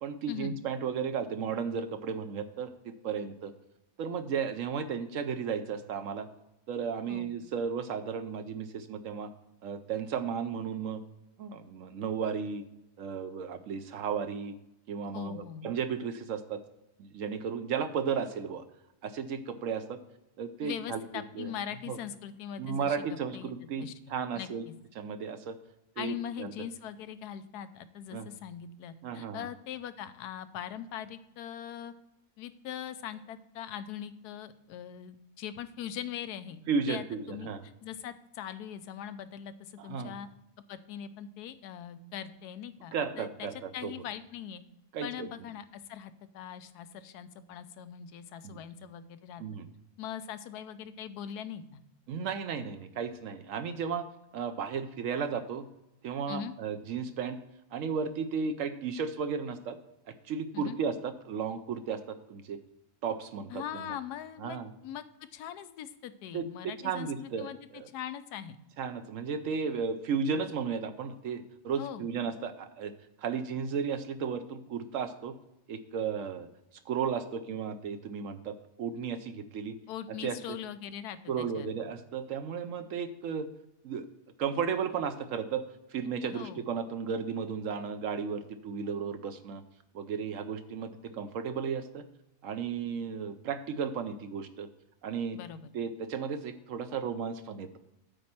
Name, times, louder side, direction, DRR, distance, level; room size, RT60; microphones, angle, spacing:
voice 1, 0.0-3.5 4.0-6.3 6.7-9.3 9.6-11.0 11.4-12.6 13.0-14.5 14.9-16.6 17.0-18.7 19.0-20.0 20.4-21.0 21.4-21.5 21.9-22.0 22.6-24.7 25.0-25.6 26.0-26.5 28.1-28.3 29.0-29.5 36.7-37.6 39.8-40.1 42.9-43.9 44.9-45.3 48.4-48.6 49.4-49.7 52.1-54.1 54.3-55.6 56.0-57.4 57.7-59.8 60.2-62.6 63.0-63.9 64.4-64.7 66.3-67.9 68.8-72.9 73.2-75.3 75.7-76.5 76.9-79.7 80.1-80.6 81.3-83.5 83.8-84.0 84.4-89.6 89.9-92.0 92.4-94.7 95.0-95.4 95.7-97.8, right 6 dB, 65° right, 10 dB, 0.9 m, -34 dB
voice 2, 15.1-15.7 20.6-23.5 23.8-23.9 24.3-24.7 26.0-31.9 32.4-36.6 36.9-37.5 37.8-40.3 40.7-43.5 43.7-44.6 45.0-49.4 50.0-51.8 56.3-56.5 60.5-60.8 63.5-67.6 67.9-68.6 71.8-72.1 79.9-81.7 86.3-86.6 95.3-95.7, left 9 dB, 85° left, 12 dB, 1.2 m, -41 dB
8.6 x 4.3 x 7.2 m, 0.90 s
omnidirectional pair, 1.6 m